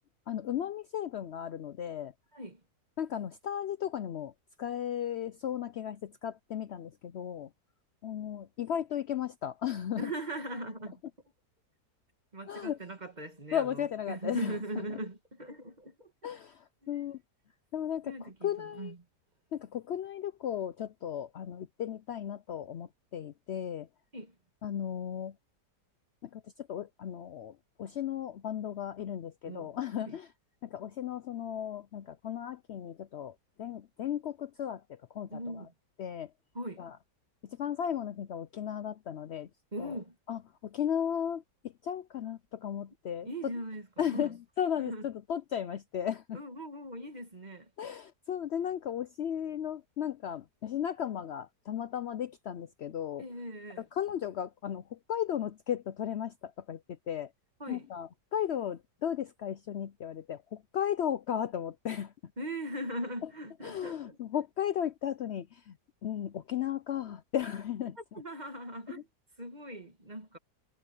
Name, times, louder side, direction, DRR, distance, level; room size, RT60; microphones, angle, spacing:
voice 1, 0.3-2.1 3.0-4.3 4.6-7.5 8.0-10.1 12.5-12.8 13.5-14.6 16.2-17.2 17.7-18.9 19.5-23.9 24.6-25.3 26.2-26.4 26.7-30.3 30.6-35.6 36.0-36.3 36.8-37.0 37.4-39.5 39.8-40.0 40.3-41.4 41.8-43.5 44.0-46.4 47.8-53.2 53.8-56.8 57.1-57.3 57.7-62.1 63.6-65.7 66.0-68.0 68.9-69.0, left 9 dB, 80° left, 0.5 m, -35 dB
voice 2, 10.0-11.0 12.3-16.1 16.8-17.0 18.0-19.0 24.1-24.3 29.4-29.7 30.0-30.2 35.3-35.7 36.5-36.8 39.7-40.1 43.2-44.4 44.8-45.1 46.3-47.7 53.2-53.9 57.6-57.9 62.4-64.2 68.0-69.1 69.4-70.4, right 1 dB, 25° right, 2.1 m, -40 dB
omnidirectional pair, 1.8 m